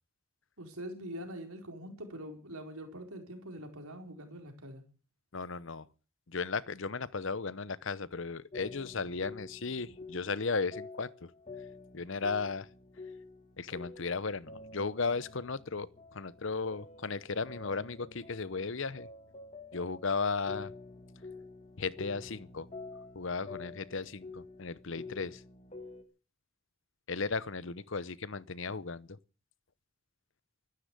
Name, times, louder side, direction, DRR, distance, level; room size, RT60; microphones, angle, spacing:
voice 1, 0.6-4.8, equal, 80° right, 4.6 m, -44 dB
voice 2, 5.3-5.9 6.3-11.3 11.9-12.7 13.6-19.1 19.7-20.7 21.8-22.7 23.1-25.4 27.1-29.2, left 4 dB, 60° left, 0.8 m, -35 dB
sound 1, 8.5-10.5 10.7-26.0, left 3 dB, 30° left, 1.7 m, -48 dB
14.0 x 11.5 x 8.3 m
head